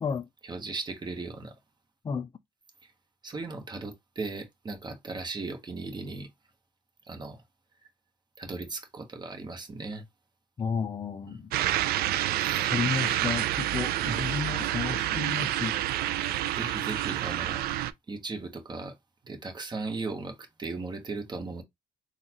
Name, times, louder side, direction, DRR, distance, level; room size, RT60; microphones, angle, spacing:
voice 1, 0.4-1.6 2.8-2.9 3.2-6.3 7.0-7.4 8.4-10.0 11.2-11.4 12.5-12.6 14.0-14.2 16.5-17.6 18.1-19.0 19.2-21.6, right 3 dB, 25° right, 1.1 m, -37 dB
voice 2, 10.6-11.5 12.6-15.8, left 6 dB, 25° left, 0.4 m, -32 dB
sound 1, 11.5-17.9, right 13 dB, 70° right, 0.4 m, -28 dB
3.9 x 2.3 x 2.9 m
cardioid pair, 100°, 16 cm